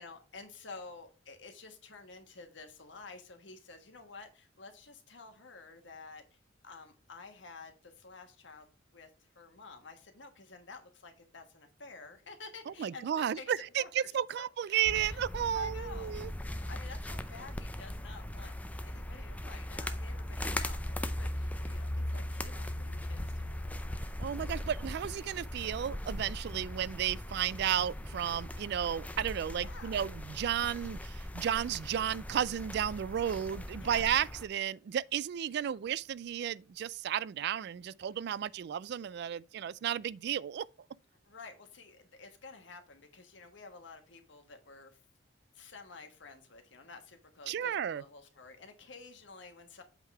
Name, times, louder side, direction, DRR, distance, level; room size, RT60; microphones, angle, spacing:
voice 1, 0.0-6.2 6.6-14.1 14.4-15.2 15.5-16.2 16.6-18.5 18.8-23.8 24.6-24.7 29.5-30.0 33.8-34.1 41.2-45.0 45.5-49.8, left 4 dB, 70° left, 1.4 m, -51 dB
voice 2, 12.8-16.3 24.2-40.7 47.5-48.0, right 9 dB, 60° right, 0.3 m, -33 dB
sound 1, 14.8-34.4, left 1 dB, 10° left, 0.5 m, -39 dB
8.1 x 3.8 x 4.7 m
head